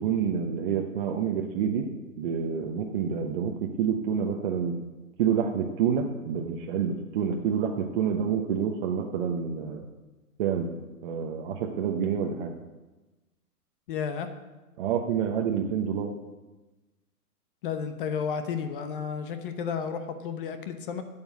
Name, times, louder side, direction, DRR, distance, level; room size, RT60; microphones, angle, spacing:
voice 1, 0.0-1.9 2.2-4.8 5.2-9.9 10.4-12.5 14.8-16.1, right 7 dB, 35° right, 1 dB, 1.0 m, -28 dB
voice 2, 13.9-14.3 17.6-21.0, left 6 dB, 35° left, 9 dB, 1.0 m, -32 dB
9.2 x 7.2 x 8.0 m, 1.1 s
hypercardioid pair, 140°, 46 cm